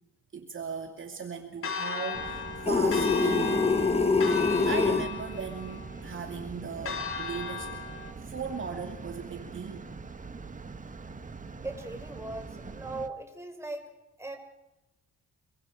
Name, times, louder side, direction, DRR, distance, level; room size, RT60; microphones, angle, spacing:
voice 1, 0.3-3.8 4.5-7.7 8.2-9.9, right 5 dB, 40° right, 3 dB, 2.6 m, -38 dB
Church bell, 1.6-8.1, left 4 dB, 45° left, 3.4 m, -36 dB
sound 1, 2.1-13.1, right 4 dB, 25° right, 1.6 m, -43 dB
sound 2, 2.7-5.1, left 4 dB, 20° left, 1.3 m, -24 dB
voice 2, 11.6-13.9 14.2-14.4, right 2 dB, 10° right, 4 dB, 5.4 m, -39 dB
25.0 x 24.0 x 4.9 m, 0.97 s
cardioid pair, 90°, 30 cm